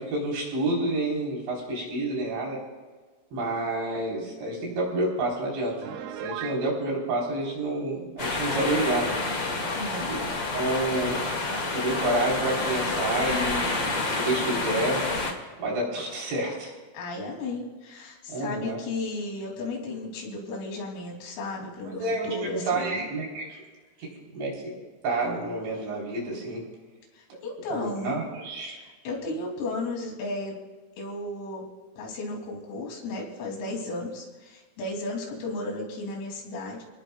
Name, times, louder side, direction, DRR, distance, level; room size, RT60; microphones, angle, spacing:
voice 1, 0.0-2.6 3.3-5.8 6.2-9.2 10.1-10.2 10.5-11.2 11.7-14.0 14.2-15.0 15.6-16.7 18.3-18.8 21.8-23.6 24.0-24.7 25.0-26.6 27.7-28.8, right 2 dB, 60° right, -3 dB, 6.3 m, -29 dB
Piano, 5.8-6.6, right 11 dB, 90° right, 2.3 m, -36 dB
sound 1, 8.2-15.3, left 2 dB, 50° left, 1.3 m, -29 dB
voice 2, 9.8-10.5 16.9-23.0 27.1-28.2 28.8-30.6 31.0-31.6 32.0-36.8, left 2 dB, 85° left, 0 dB, 5.8 m, -34 dB
28.5 x 18.5 x 2.4 m, 1.3 s
omnidirectional pair, 5.9 m